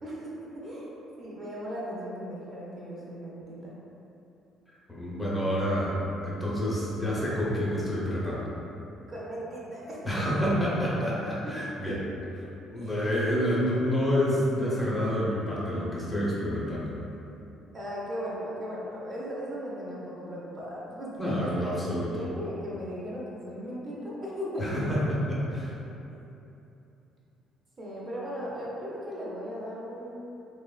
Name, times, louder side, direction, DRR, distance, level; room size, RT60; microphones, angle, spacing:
voice 1, 0.0-3.7 9.1-10.1 11.4-11.5 12.7-12.9 17.7-24.7 26.1-26.2 27.8-30.2, equal, 35° right, -6 dB, 0.6 m, -37 dB
voice 2, 4.9-6.0 6.2-8.5 10.0-12.0 12.7-16.9 21.2-22.2 24.6-25.7, equal, 5° left, -7 dB, 0.6 m, -28 dB
2.9 x 2.1 x 2.3 m, 2.9 s
cardioid pair, 110°, 0 cm